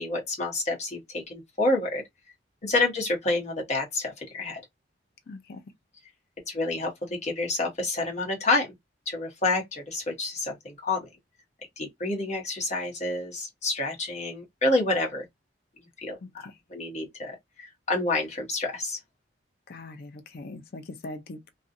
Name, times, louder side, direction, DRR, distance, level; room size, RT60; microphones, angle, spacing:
voice 1, 0.0-2.0 2.6-4.6 6.5-8.7 9.1-11.0 11.8-15.2 16.0-16.2 16.7-19.0, left 2 dB, 40° left, 1.1 m, -28 dB
voice 2, 5.3-5.6 16.2-16.6 19.7-21.5, left 2 dB, 55° left, 0.5 m, -41 dB
2.5 x 2.3 x 2.6 m
head